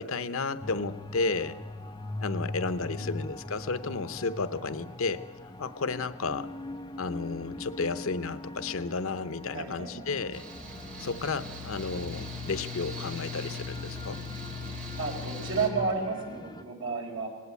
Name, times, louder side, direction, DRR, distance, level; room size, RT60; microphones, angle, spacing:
voice 1, 0.0-1.6 2.2-5.2 5.6-6.5 7.0-10.5 11.0-14.2, left 4 dB, 90° left, 13 dB, 0.8 m, -32 dB
sound 1, 0.6-16.6, left 2 dB, 20° left, 0.8 m, -42 dB
voice 2, 9.5-10.1 15.0-17.3, right 4 dB, 75° right, 1 dB, 4.3 m, -32 dB
Mechanical fan, 10.3-15.7, left 3 dB, 35° right, 2.2 m, -39 dB
18.5 x 18.0 x 8.2 m, 1.4 s
head